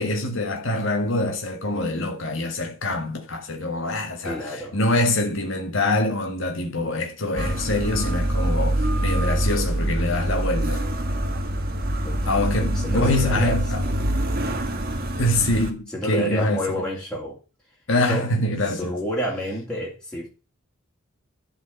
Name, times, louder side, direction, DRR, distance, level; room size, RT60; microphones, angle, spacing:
voice 1, 0.0-10.9 12.3-13.8 15.2-16.7 17.9-19.0, left 1 dB, 65° left, 1.8 m, -25 dB
voice 2, 4.2-4.8 12.0-12.3 12.8-13.6 15.9-17.4 18.1-18.3 18.7-20.3, equal, 5° left, 3.1 m, -29 dB
sound 1, 7.4-15.7, right 1 dB, 50° right, 1.7 m, -25 dB
12.0 x 5.0 x 5.4 m
head